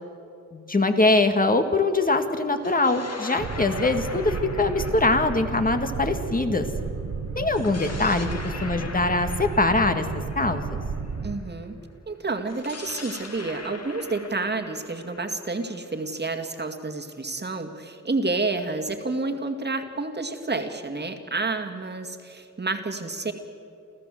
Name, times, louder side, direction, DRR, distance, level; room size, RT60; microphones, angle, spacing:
voice 1, 0.5-6.7 7.4-10.1 10.4-10.8, left 2 dB, 25° left, 7 dB, 1.9 m, -23 dB
sound 1, 2.5-6.9 7.5-11.4 12.4-16.3, left 3 dB, 50° left, 2.5 m, -41 dB
Boat Water vehicle, 3.4-11.4, right 5 dB, 50° right, 1.2 m, -32 dB
voice 2, 11.2-11.8 12.1-23.3, right 3 dB, 30° right, 5 dB, 2.2 m, -29 dB
29.0 x 14.0 x 7.7 m, 2.6 s
cardioid pair, 90°, 32 cm